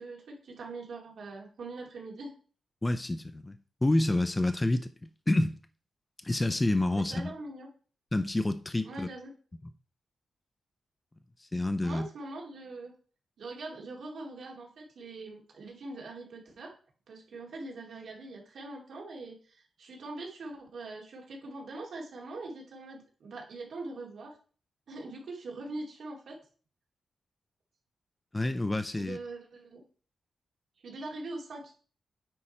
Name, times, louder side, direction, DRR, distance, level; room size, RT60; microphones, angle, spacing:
voice 1, 0.0-2.3 6.9-7.7 8.8-9.3 11.8-12.9 13.4-16.8 17.1-24.4 24.9-26.4 29.0-29.8 30.8-31.7, right 2 dB, 60° right, 2.4 m, -42 dB
voice 2, 2.8-5.6 6.2-7.3 8.1-9.1 11.4-12.1 28.3-29.2, left 2 dB, 15° left, 0.4 m, -28 dB
9.0 x 5.1 x 4.2 m
wide cardioid pair, 175°, 0 cm